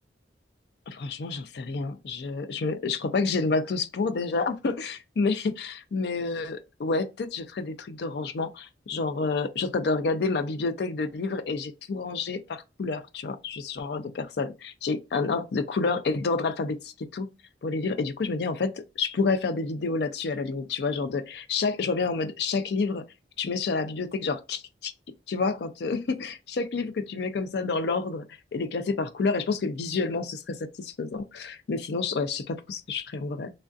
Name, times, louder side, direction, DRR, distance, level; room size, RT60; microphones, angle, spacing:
voice 1, 0.9-17.3 17.6-23.0 23.4-24.9 25.3-28.2 28.5-33.5, left 4 dB, 60° left, 0.4 m, -29 dB
3.3 x 2.4 x 2.5 m
head